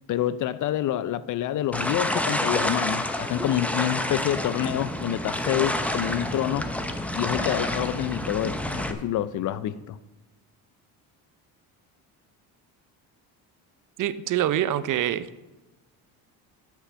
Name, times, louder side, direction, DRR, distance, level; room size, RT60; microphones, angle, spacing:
voice 1, 0.1-6.7 7.1-10.0, left 12 dB, 50° left, 0.5 m, -27 dB
sound 1, 1.7-8.9, left 1 dB, 5° left, 0.7 m, -29 dB
voice 2, 14.0-15.4, right 11 dB, 50° right, 0.5 m, -25 dB
8.3 x 6.6 x 6.1 m
cardioid pair, 105°, 40 cm